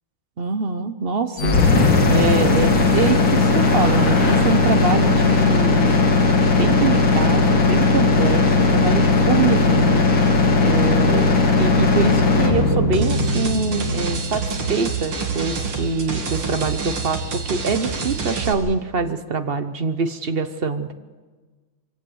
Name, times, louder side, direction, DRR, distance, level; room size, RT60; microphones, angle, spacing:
voice 1, 0.4-1.5 2.1-6.0 6.5-10.0 10.6-20.9, right 4 dB, 45° right, 9 dB, 0.7 m, -24 dB
sound 1, 1.4-15.3, left 3 dB, 70° left, 3.4 m, -17 dB
sound 2, 12.9-18.5, right 4 dB, 90° right, 3.3 m, -27 dB
24.5 x 17.0 x 7.9 m, 1.4 s
omnidirectional pair, 2.2 m